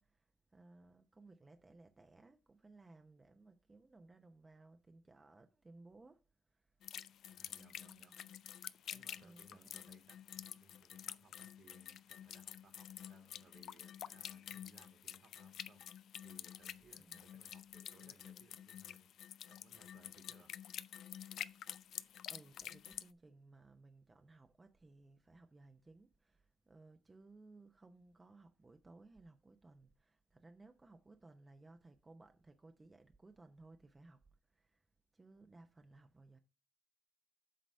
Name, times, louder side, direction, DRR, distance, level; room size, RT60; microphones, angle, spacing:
voice 1, 0.0-7.2 7.5-8.3 9.2-10.0 17.0-17.2 22.2-34.9 35.1-36.4, right 2 dB, 25° right, 0.8 m, -61 dB
sound 1, 6.8-23.1, left 10 dB, 75° left, 0.4 m, -49 dB
voice 2, 7.3-8.2 8.9-15.8 16.2-19.1 19.5-20.5, right 5 dB, 60° right, 1.8 m, -67 dB
7.7 x 4.0 x 6.3 m
cardioid pair, 90°, 0 cm